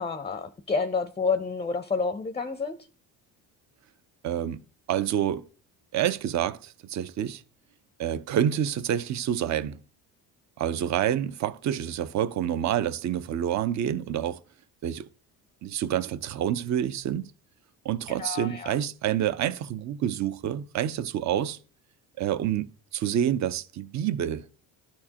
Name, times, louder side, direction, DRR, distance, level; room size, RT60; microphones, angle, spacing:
voice 1, 0.0-2.8 18.1-18.8, left 4 dB, 15° left, 0.5 m, -29 dB
voice 2, 4.2-4.6 4.9-5.4 5.9-7.4 8.0-9.8 10.6-14.4 14.8-15.1 15.6-17.3 17.8-21.6 22.2-24.5, right 10 dB, 50° right, 0.6 m, -28 dB
12.5 x 4.4 x 2.9 m
supercardioid pair, 90°, 38 cm